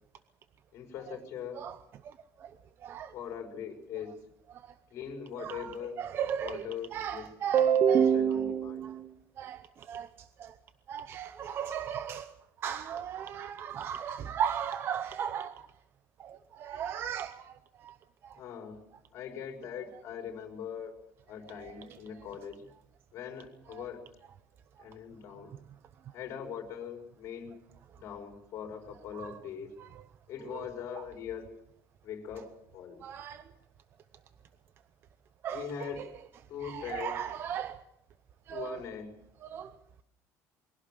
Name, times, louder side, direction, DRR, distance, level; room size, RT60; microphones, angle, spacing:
voice 1, 0.7-1.6 3.1-4.2 4.9-6.0 6.4-7.3 7.9-8.8 18.4-18.8 19.1-20.9 21.3-22.7 23.1-24.0 24.8-25.5 26.1-27.5 28.0-29.7 30.3-31.5 32.0-33.0 35.5-36.0 36.5-37.1 38.5-39.1, left 8 dB, 50° left, 4.5 m, -41 dB
voice 2, 2.0-2.5 2.8-3.1 4.5-4.7 5.4-10.6 10.9-15.7 16.2-18.0 18.2-18.4 21.6-22.0 23.7-23.8 29.1-29.4 29.8-30.0 30.5-30.7 30.9-31.0 33.0-33.5 35.4-36.1 36.6-37.8 38.5-38.8 39.4-39.7, right 8 dB, 40° right, 0.8 m, -33 dB
22.5 x 17.0 x 7.5 m
cardioid pair, 165°, 6 cm